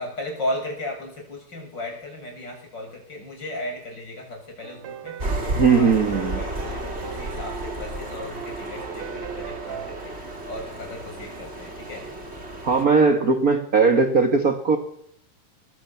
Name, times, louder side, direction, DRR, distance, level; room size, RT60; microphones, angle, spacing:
voice 1, 0.0-10.1 10.4-12.0, left 1 dB, 25° left, 1 dB, 8.0 m, -35 dB
sound 1, 4.6-10.1, right 9 dB, 60° right, 2.1 m, -39 dB
sound 2, 5.2-12.8, right 1 dB, 15° right, 3.3 m, -33 dB
voice 2, 5.6-6.4 12.6-14.8, right 4 dB, 35° right, 6 dB, 1.4 m, -19 dB
24.5 x 20.5 x 7.2 m, 0.69 s
omnidirectional pair, 4.6 m